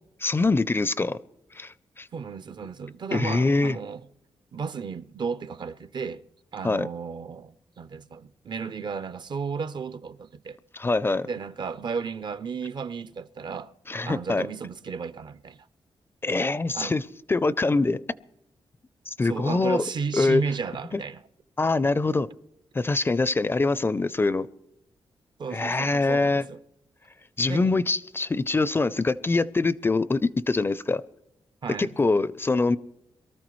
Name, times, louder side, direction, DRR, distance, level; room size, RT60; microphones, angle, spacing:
voice 1, 0.2-1.2 1.5-2.1 3.1-3.8 6.6-6.9 10.7-11.3 13.9-14.5 16.2-17.0 17.3-18.0 19.1-19.8 20.1-20.4 20.9-21.0 21.6-22.3 22.7-24.5 25.5-26.4 27.4-31.0 31.8-32.8, left 3 dB, 25° left, 0.4 m, -24 dB
voice 2, 2.1-4.1 4.5-6.2 6.5-10.6 11.2-13.7 14.0-15.7 16.7-16.9 19.3-21.2 25.4-26.6 27.4-27.7 31.6-31.9, right 5 dB, 50° right, 0.5 m, -34 dB
23.0 x 13.0 x 3.1 m
wide cardioid pair, 110°, 10 cm